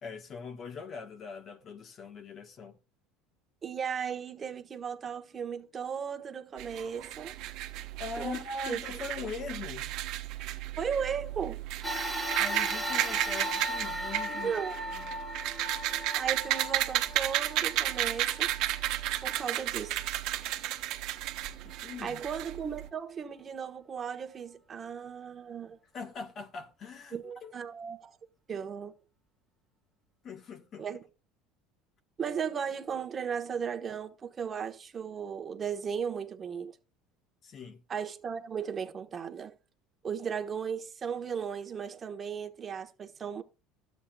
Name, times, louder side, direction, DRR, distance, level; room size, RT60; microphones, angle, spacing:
voice 1, 0.0-2.8 8.0-10.0 12.4-14.5 14.9-15.1 21.6-22.2 25.9-27.5 30.2-30.9 37.4-37.8, left 5 dB, 40° left, 1.4 m, -41 dB
voice 2, 3.6-7.3 8.2-8.4 8.7-8.8 9.2-9.3 10.8-11.6 14.3-14.7 16.1-18.5 19.2-20.0 22.0-25.8 27.1-28.1 28.5-28.9 30.8-31.0 32.2-36.8 37.9-39.5 40.0-43.4, right 7 dB, 30° right, 1.3 m, -36 dB
sound 1, 6.6-22.9, right 14 dB, 65° right, 1.1 m, -33 dB
sound 2, 11.8-20.4 21.1-21.2 22.3-22.4, right 1 dB, 5° right, 1.6 m, -37 dB
12.5 x 8.4 x 2.4 m
supercardioid pair, 115°, 0 cm